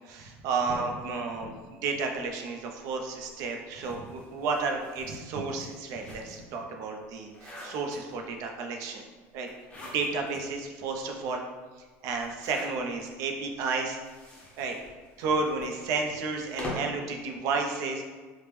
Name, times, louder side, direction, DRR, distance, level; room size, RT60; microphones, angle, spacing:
voice 1, 0.1-1.5 1.8-9.0 9.3-9.5 9.8-11.4 12.0-14.0 14.6-14.8 15.2-18.0, right 4 dB, 60° right, 3 dB, 0.4 m, -32 dB
sound 1, 0.7-2.3 3.1-6.6 7.0-8.4 9.4-10.4 10.9-11.0 11.2-11.3 12.2-13.1 13.8-17.1, left 1 dB, 15° left, 0.6 m, -44 dB
3.3 x 2.0 x 3.0 m, 1.3 s
cardioid pair, 155°, 6 cm